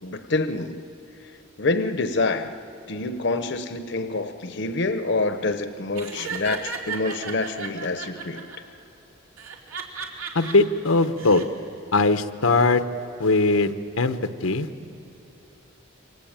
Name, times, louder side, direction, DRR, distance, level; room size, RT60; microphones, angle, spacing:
voice 1, 0.0-0.8 1.6-2.6 2.9-8.4, left 3 dB, 55° left, 9 dB, 0.9 m, -26 dB
Laughter, 5.9-8.6 9.4-10.5 11.0-11.4, right 5 dB, 85° right, 3.0 m, -34 dB
voice 2, 10.3-11.4 11.9-12.8 13.2-14.9, left 3 dB, 85° left, 9 dB, 1.0 m, -21 dB
27.5 x 24.0 x 8.8 m, 2.7 s
head